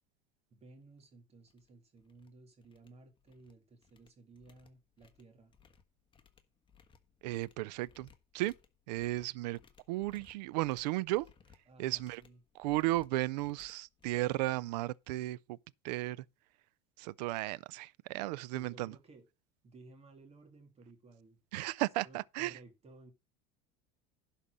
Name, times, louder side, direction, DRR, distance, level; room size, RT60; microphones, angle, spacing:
voice 1, 0.5-5.5 11.7-12.4 18.5-19.3 19.6-21.4 21.8-23.1, right 2 dB, 30° right, 2.2 m, -57 dB
sound 1, 0.9-1.0 1.5-1.7 2.0-2.3 2.6-3.5 3.8-15.1, left 6 dB, 25° left, 1.4 m, -64 dB
voice 2, 7.2-8.1 8.3-8.5 8.9-9.6 9.9-11.3 11.8-12.2 12.6-15.4 15.8-16.2 17.0-18.9 21.5-22.6, right 18 dB, 90° right, 0.4 m, -34 dB
11.5 x 4.2 x 6.2 m
supercardioid pair, 115°, 21 cm